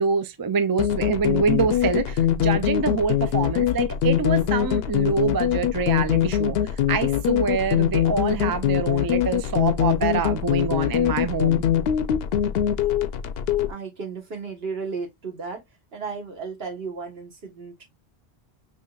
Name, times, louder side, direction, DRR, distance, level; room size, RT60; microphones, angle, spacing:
voice 1, 0.0-6.6 6.9-11.6, right 5 dB, 35° right, 0.3 m, -25 dB
sound 1, 0.8-13.7, left 10 dB, 70° left, 0.8 m, -22 dB
voice 2, 13.7-15.6 15.9-17.9, right 5 dB, 65° right, 1.6 m, -34 dB
5.5 x 3.2 x 2.3 m
omnidirectional pair, 1.1 m